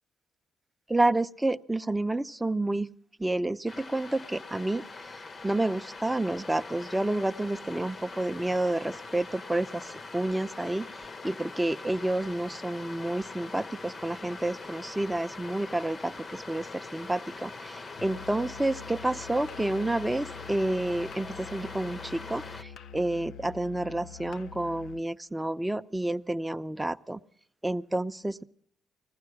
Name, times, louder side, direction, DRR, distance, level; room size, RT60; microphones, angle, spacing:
voice 1, 0.9-2.9 3.2-4.8 5.4-10.9 11.2-27.2 27.6-28.4, right 1 dB, 10° right, 10 dB, 0.5 m, -29 dB
sound 1, 3.7-22.6, left 3 dB, 35° left, 0.8 m, -43 dB
Musical instrument, 18.0-25.1, left 7 dB, 70° left, 0.5 m, -46 dB
19.5 x 15.0 x 4.8 m, 0.68 s
cardioid pair, 90°, 0 cm